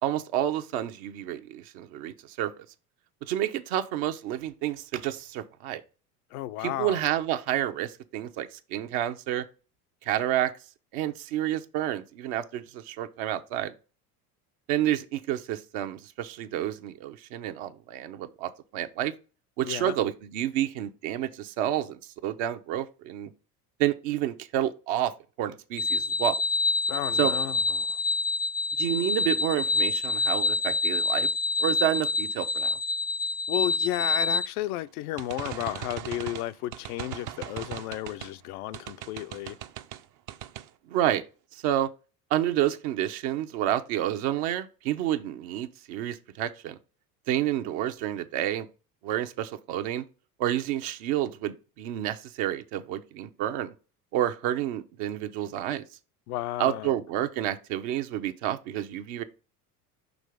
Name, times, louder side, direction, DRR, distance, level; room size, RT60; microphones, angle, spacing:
voice 1, 0.0-2.5 3.2-5.8 6.6-9.4 10.0-10.5 10.9-13.7 14.7-19.1 19.6-23.3 23.8-25.1 25.4-26.4 27.2-27.3 28.8-31.3 31.6-32.8 40.9-41.2 41.5-41.9 42.3-46.8 47.3-48.7 49.0-50.0 50.4-53.7 54.1-55.8 56.6-59.2, right 12 dB, 65° right, 0.9 m, -29 dB
voice 2, 6.3-7.0 19.6-19.9 26.9-28.0 33.5-39.6 56.3-56.9, left 14 dB, 70° left, 0.6 m, -33 dB
sound 1, 25.8-34.5, left 3 dB, 25° left, 0.4 m, -27 dB
sound 2, 35.2-38.3 38.7-40.0 40.3-40.7, right 12 dB, 40° right, 0.6 m, -39 dB
6.4 x 3.1 x 4.9 m
hypercardioid pair, 75°, 46 cm